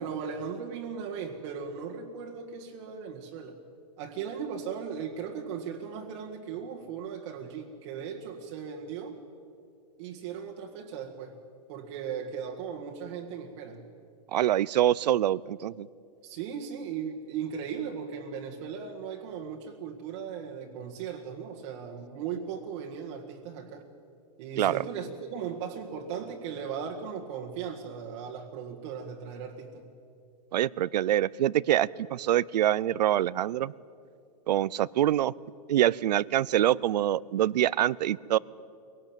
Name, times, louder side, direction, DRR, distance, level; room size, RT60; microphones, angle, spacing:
voice 1, 0.0-3.6 4.0-9.2 10.0-11.4 11.7-13.8 16.2-23.9 24.4-29.8, right 7 dB, 45° right, 0 dB, 1.8 m, -37 dB
voice 2, 14.3-15.9 24.6-24.8 30.5-33.7 34.5-35.3 35.7-38.4, right 12 dB, 80° right, 23 dB, 0.6 m, -25 dB
23.0 x 18.0 x 8.9 m, 2.4 s
supercardioid pair, 155°, 21 cm